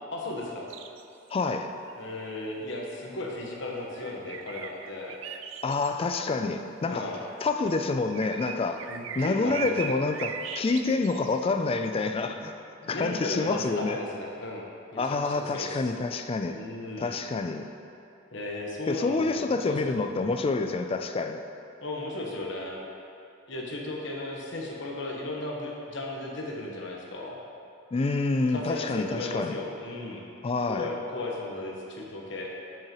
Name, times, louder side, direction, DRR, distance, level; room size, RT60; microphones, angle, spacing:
voice 1, 0.1-0.7 2.0-5.2 6.9-7.2 8.9-10.0 12.2-12.3 12.8-14.7 14.9-15.8 16.5-17.1 18.3-20.0 21.8-22.8 23.5-27.4 28.5-30.2 30.7-32.6, left 2 dB, 70° left, -2 dB, 1.1 m, -36 dB
sound 1, 0.7-1.0 1.3-1.4 1.9-2.0 4.0-6.4 7.2-11.5 11.9-12.0, right 7 dB, 75° right, 0.4 m, -39 dB
voice 2, 1.3-1.7 5.6-7.1 7.4-8.8 9.2-12.5 12.9-14.0 15.0-16.6 17.0-17.7 18.9-21.4 27.9-29.6 30.4-30.9, left 3 dB, 30° left, 6 dB, 0.3 m, -27 dB
7.6 x 7.5 x 3.0 m, 2.7 s
head